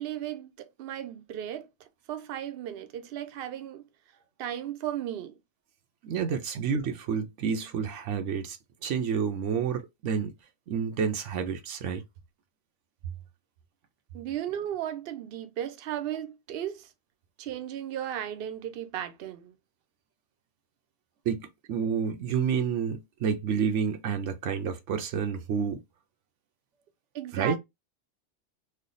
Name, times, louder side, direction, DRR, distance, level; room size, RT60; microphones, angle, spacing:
voice 1, 0.0-1.7 2.1-3.8 4.4-5.4 14.1-16.9 17.4-19.5 27.1-27.6, right 11 dB, 60° right, 0.7 m, -35 dB
voice 2, 6.0-10.3 10.7-12.0 21.3-25.8 27.3-27.6, right 6 dB, 90° right, 1.0 m, -29 dB
3.2 x 2.2 x 3.8 m
omnidirectional pair, 1.2 m